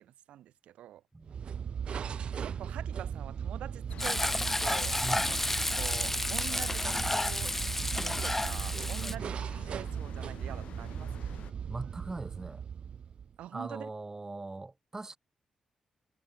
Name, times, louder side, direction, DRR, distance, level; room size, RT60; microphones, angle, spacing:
voice 1, 0.0-1.0 2.4-5.4 5.8-7.6 8.0-11.1 13.4-13.9, right 12 dB, 80° right, 2.0 m, -45 dB
voice 2, 1.1-1.6 5.0-5.2 9.0-9.2 11.7-12.6 13.5-15.2, right 2 dB, 25° right, 3.3 m, -40 dB
sound 1, 1.2-13.4, right 7 dB, 60° right, 2.2 m, -37 dB
sound 2, 3.9-11.5, left 11 dB, 75° left, 2.1 m, -50 dB
Frying (food), 4.0-9.2, left 1 dB, 15° left, 1.0 m, -31 dB
supercardioid pair, 55°, 2 cm